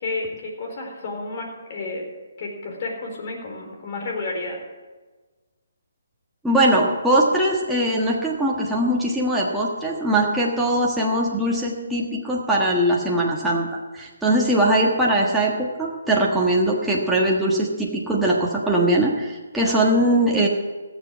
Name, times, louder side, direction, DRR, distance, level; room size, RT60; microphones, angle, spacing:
voice 1, 0.0-2.0 2.4-4.6, left 3 dB, 40° left, 1 dB, 4.1 m, -31 dB
voice 2, 6.4-20.5, right 1 dB, 5° right, -5 dB, 1.4 m, -21 dB
17.0 x 7.4 x 7.3 m, 1.3 s
hypercardioid pair, 155°, 0 cm